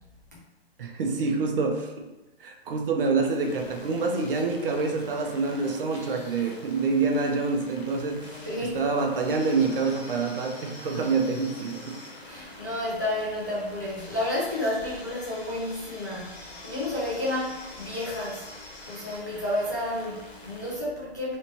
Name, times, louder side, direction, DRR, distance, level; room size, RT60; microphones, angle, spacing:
voice 1, 0.8-2.1 2.4-12.0, right 4 dB, 55° right, 3 dB, 0.7 m, -27 dB
sound 1, 3.3-20.8, left 2 dB, 70° left, 1.2 m, -45 dB
voice 2, 8.5-8.8 12.2-18.5 18.9-21.3, left 1 dB, 20° left, -8 dB, 0.3 m, -31 dB
3.3 x 3.0 x 2.8 m, 1.1 s
hypercardioid pair, 160°, 32 cm